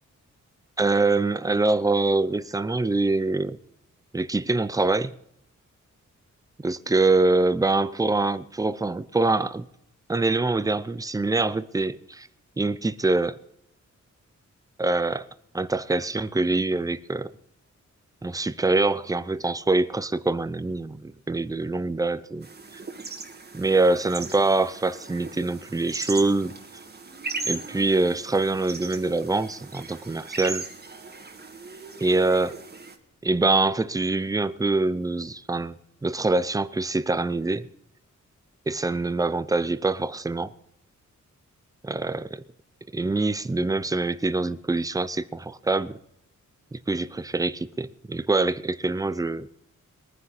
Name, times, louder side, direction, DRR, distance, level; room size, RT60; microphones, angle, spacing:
voice 1, 0.8-3.6 4.1-5.1 6.6-9.7 10.1-12.3 12.6-13.4 14.8-15.3 15.5-17.3 18.2-22.5 23.5-26.5 27.4-30.7 32.0-32.6 33.2-35.8 36.0-37.7 38.7-40.5 41.8-42.4 42.9-46.0 46.7-49.5, right 3 dB, 10° right, 0.5 m, -24 dB
sound 1, 22.4-33.0, right 3 dB, 30° right, 1.6 m, -38 dB
22.0 x 9.6 x 4.2 m
wide cardioid pair, 145°, 30 cm